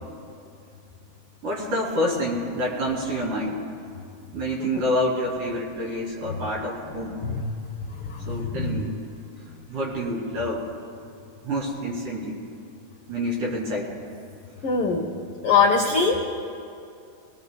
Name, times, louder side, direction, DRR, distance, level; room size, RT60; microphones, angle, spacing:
voice 1, 1.4-3.6 4.3-7.2 8.3-8.9 9.7-10.7 11.4-12.4 13.1-13.9, equal, 75° right, -3 dB, 4.4 m, -27 dB
voice 2, 7.9-8.8 14.6-15.1 15.4-16.3, left 5 dB, 75° left, 0 dB, 1.3 m, -23 dB
24.5 x 18.5 x 2.3 m, 2.5 s
omnidirectional pair, 3.7 m